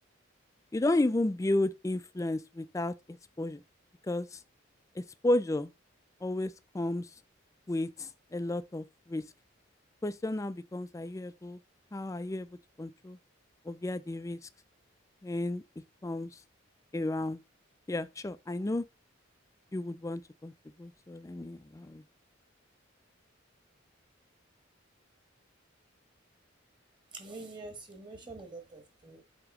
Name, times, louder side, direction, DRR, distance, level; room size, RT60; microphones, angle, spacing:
voice 1, 0.7-3.6 4.1-4.4 5.0-5.7 6.2-7.1 7.7-9.2 10.0-11.6 11.9-12.5 12.8-13.2 13.7-14.4 15.2-15.6 16.0-16.4 16.9-17.4 17.9-18.8 19.7-20.5 20.8-22.0, left 1 dB, 15° left, 0.3 m, -32 dB
voice 2, 27.1-29.2, right 3 dB, 25° right, 1.4 m, -45 dB
7.8 x 3.0 x 4.8 m
head